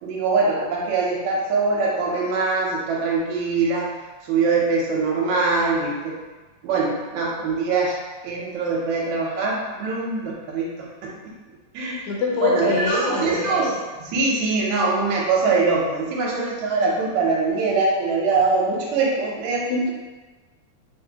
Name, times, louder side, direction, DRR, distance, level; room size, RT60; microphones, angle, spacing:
voice 1, 0.0-3.9 4.2-6.2 6.6-7.9 8.2-11.1 11.7-12.1 12.4-19.7, right 3 dB, 80° right, -3 dB, 1.9 m, -23 dB
voice 2, 12.1-13.4 19.7-19.9, left 4 dB, 80° left, -2 dB, 2.0 m, -24 dB
4.5 x 2.6 x 2.8 m, 1.3 s
omnidirectional pair, 3.3 m